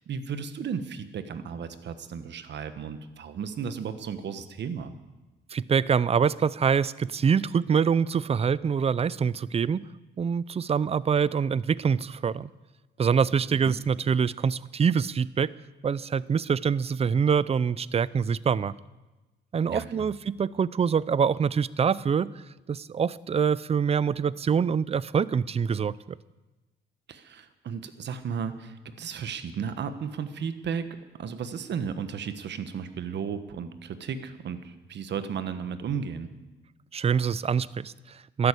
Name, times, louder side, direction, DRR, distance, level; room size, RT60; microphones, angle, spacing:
voice 1, 0.0-4.9 13.5-13.8 19.7-20.1 27.1-30.9 31.2-36.3, right 7 dB, 60° right, 10 dB, 1.4 m, -34 dB
voice 2, 5.5-9.8 10.2-12.5 13.0-15.5 15.8-18.7 19.5-22.3 22.7-26.0 36.9-38.5, right 6 dB, 30° right, 20 dB, 0.5 m, -25 dB
13.0 x 11.5 x 8.4 m, 1.1 s
cardioid pair, 90°, 20 cm